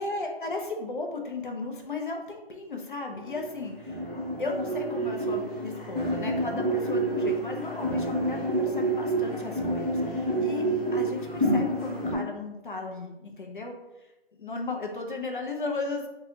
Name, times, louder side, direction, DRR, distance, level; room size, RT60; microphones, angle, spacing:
voice 1, 0.0-4.1 4.4-14.1 14.4-16.1, left 3 dB, 55° left, 2 dB, 0.5 m, -35 dB
sound 1, 3.1-12.1, right 1 dB, 5° left, 0.9 m, -28 dB
2.6 x 2.3 x 2.8 m, 0.98 s
figure-of-eight pair, 165°, 31 cm